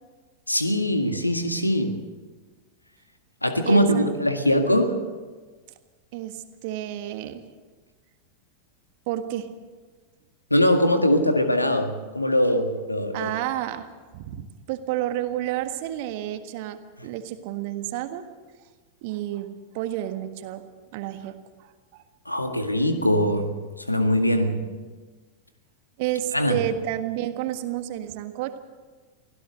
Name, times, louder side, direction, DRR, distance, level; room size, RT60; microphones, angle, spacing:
voice 1, 0.5-2.0 3.4-5.0 10.5-13.3 22.3-23.5 23.9-24.7 26.3-26.6, equal, 85° left, 7 dB, 1.8 m, -22 dB
voice 2, 3.6-4.1 6.1-7.5 9.1-9.5 13.1-13.9 14.1-18.3 19.0-19.5 19.7-20.6 20.9-21.7 26.0-28.6, right 13 dB, 50° right, 9 dB, 1.6 m, -30 dB
24.0 x 16.5 x 6.5 m, 1.4 s
figure-of-eight pair, 90°, 0 cm